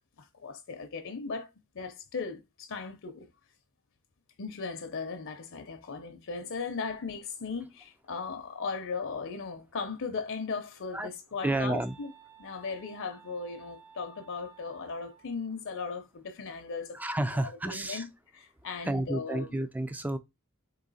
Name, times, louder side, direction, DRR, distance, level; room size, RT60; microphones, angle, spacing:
voice 1, 0.2-1.5 1.7-3.3 4.4-12.1 12.4-17.0 17.3-19.6, left 4 dB, 65° left, 0.6 m, -37 dB
Wind instrument woodwind instrument, 10.3-15.4, right 6 dB, 85° right, 0.7 m, -56 dB
voice 2, 11.4-11.9 16.9-18.1 18.8-20.2, right 1 dB, 10° right, 0.3 m, -31 dB
3.9 x 2.8 x 4.0 m
head